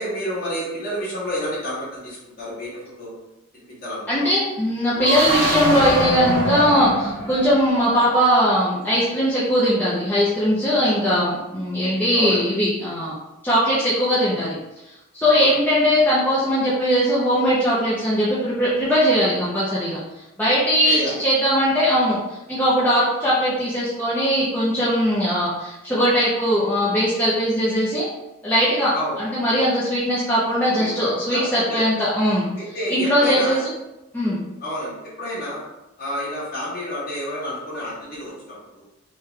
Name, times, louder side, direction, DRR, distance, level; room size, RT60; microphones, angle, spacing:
voice 1, 0.0-3.1 3.5-4.3 10.7-10.9 12.1-12.4 15.3-15.5 20.8-21.2 28.9-29.2 30.8-31.8 32.6-33.6 34.6-35.6 36.0-38.8, equal, 45° left, -8 dB, 1.3 m, -30 dB
voice 2, 4.1-13.1 13.4-14.6 15.1-20.0 20.4-22.2 22.5-28.1 28.4-32.5 32.9-33.6 34.1-34.4, equal, 10° left, -10 dB, 0.5 m, -20 dB
sound 1, 4.9-7.9, right 1 dB, 40° right, 0.9 m, -24 dB
3.2 x 2.3 x 3.1 m, 0.96 s
head